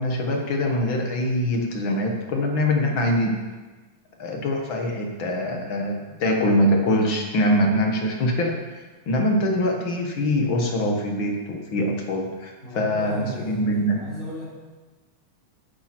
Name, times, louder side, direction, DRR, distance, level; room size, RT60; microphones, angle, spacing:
voice 1, 0.0-3.4 4.2-14.0, left 1 dB, 50° left, 1 dB, 1.5 m, -23 dB
voice 2, 12.6-14.5, equal, 20° left, -12 dB, 3.0 m, -35 dB
12.5 x 9.3 x 4.4 m, 1.3 s
omnidirectional pair, 3.8 m